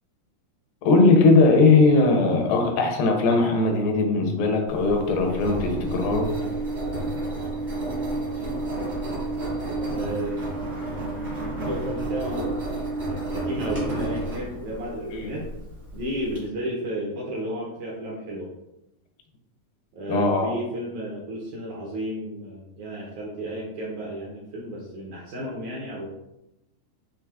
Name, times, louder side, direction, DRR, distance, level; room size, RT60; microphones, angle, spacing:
voice 1, 0.8-6.3 15.1-15.3 20.1-20.6, left 3 dB, 85° left, 3 dB, 2.5 m, -19 dB
Engine, 4.7-16.4, right 2 dB, 55° right, 0.7 m, -30 dB
voice 2, 9.9-10.4 11.7-12.5 13.1-15.4 15.9-18.5 20.0-26.1, equal, 80° right, -4 dB, 1.7 m, -33 dB
6.9 x 2.8 x 2.3 m, 0.91 s
omnidirectional pair, 4.1 m